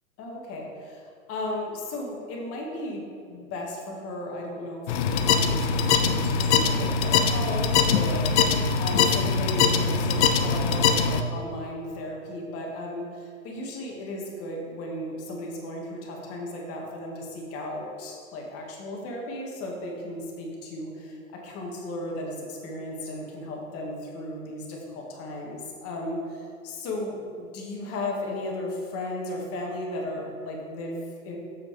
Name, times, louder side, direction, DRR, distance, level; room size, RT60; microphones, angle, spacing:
voice 1, 0.2-31.4, left 1 dB, 35° left, -1 dB, 1.9 m, -35 dB
sound 1, 4.9-11.2, left 5 dB, 50° left, 0.7 m, -22 dB
7.4 x 6.0 x 4.8 m, 2.4 s
hypercardioid pair, 110°, 42 cm